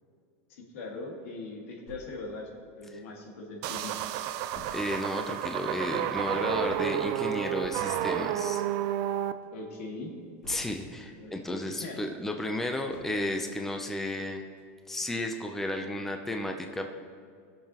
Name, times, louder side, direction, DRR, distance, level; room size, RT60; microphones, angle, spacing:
voice 1, 0.5-2.5 2.8-4.1 9.5-10.1 11.2-12.0, left 3 dB, 75° left, 0 dB, 1.8 m, -41 dB
sound 1, 1.9-3.4 3.8-3.9 4.1-11.1 11.5-13.6 14.1-14.2 14.6-14.7, equal, 35° left, 2.3 m, -53 dB
sound 2, 3.6-9.3, right 11 dB, 50° right, 0.5 m, -31 dB
voice 2, 4.7-8.6 10.5-14.4 14.9-16.9, left 1 dB, 5° left, 3 dB, 0.5 m, -33 dB
19.0 x 6.8 x 2.9 m, 2.2 s
supercardioid pair, 150°, 7 cm